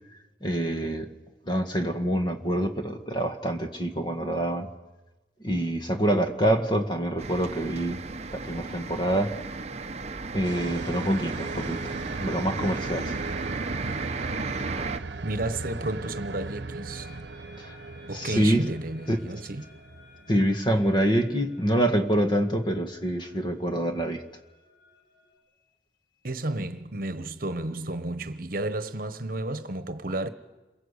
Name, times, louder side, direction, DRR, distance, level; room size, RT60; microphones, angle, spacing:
voice 1, 0.4-1.1 1.5-4.7 5.4-8.0 8.3-9.4 10.3-11.9 12.2-13.1 17.6-17.7 18.1-18.6 19.1-19.2 20.3-24.2, right 1 dB, 25° left, 1.7 m, -26 dB
sound 1, 7.2-15.0, right 3 dB, 35° right, 0.8 m, -34 dB
sound 2, 10.4-21.2, right 3 dB, 75° right, 1.0 m, -38 dB
voice 2, 15.2-17.1 18.1-19.7 26.2-30.3, right 2 dB, 50° right, 1.2 m, -32 dB
sound 3, 16.9-25.3, left 3 dB, 50° left, 6.9 m, -57 dB
27.5 x 22.5 x 8.2 m
head